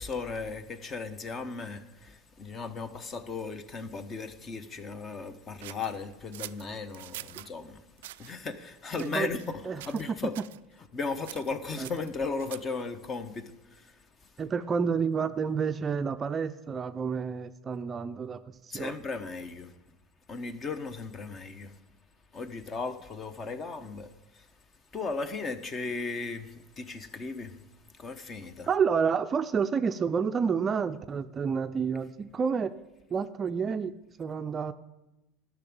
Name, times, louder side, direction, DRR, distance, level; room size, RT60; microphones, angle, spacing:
voice 1, 0.0-7.8 8.2-10.3 10.9-14.0 18.7-19.7 20.3-21.7 22.3-24.5 24.9-27.6 27.9-28.7, left 4 dB, 30° left, 1.0 m, -36 dB
sound 1, 5.6-7.5 8.0-8.3 8.9-9.5 9.8-10.1 10.3-10.6 11.2-12.8, right 16 dB, 90° right, 0.3 m, -45 dB
voice 2, 14.4-18.9 28.7-32.7 33.1-33.9 34.2-34.7, right 6 dB, 25° right, 0.4 m, -29 dB
12.0 x 6.0 x 8.7 m
supercardioid pair, 125°, 0 cm